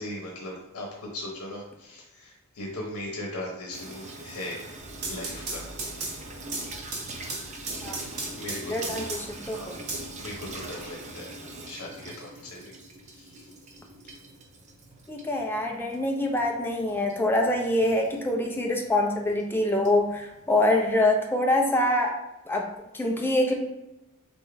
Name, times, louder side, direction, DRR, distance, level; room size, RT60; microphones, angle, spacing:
voice 1, 0.0-4.6 5.0-5.7 8.2-9.0 9.3-9.9 10.2-12.8 13.1-13.5 18.0-18.1, left 1 dB, 85° left, -2 dB, 0.8 m, -39 dB
Water tap faucet / Sink (filling or washing), 3.7-21.2, right 2 dB, 35° right, 0.6 m, -43 dB
sound 1, 4.9-9.4 9.9-10.9, right 3 dB, 85° right, 1.2 m, -36 dB
voice 2, 8.7-9.8 15.1-22.2 22.5-23.5, left 1 dB, 10° left, 1 dB, 0.6 m, -25 dB
4.1 x 3.6 x 3.3 m, 0.97 s
head